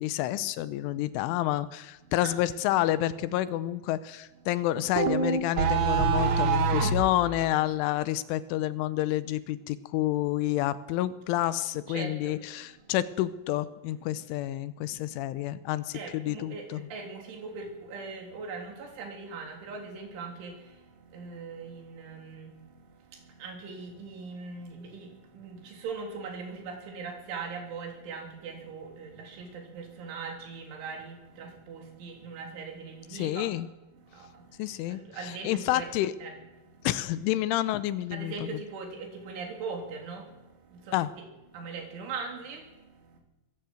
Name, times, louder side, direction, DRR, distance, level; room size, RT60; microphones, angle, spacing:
voice 1, 0.0-16.9 33.1-33.7 34.6-36.1 36.8-38.6 40.9-41.1, left 14 dB, 80° left, 15 dB, 3.2 m, -29 dB
sound 1, 5.0-7.1, right 5 dB, 90° right, 1.6 m, -24 dB
voice 2, 11.9-12.4 12.7-12.8 15.9-33.5 34.0-35.9 36.2-36.9 38.1-41.0 41.5-43.2, right 4 dB, 75° right, 3 dB, 5.6 m, -41 dB
22.5 x 15.0 x 7.8 m, 1.1 s
omnidirectional pair, 5.6 m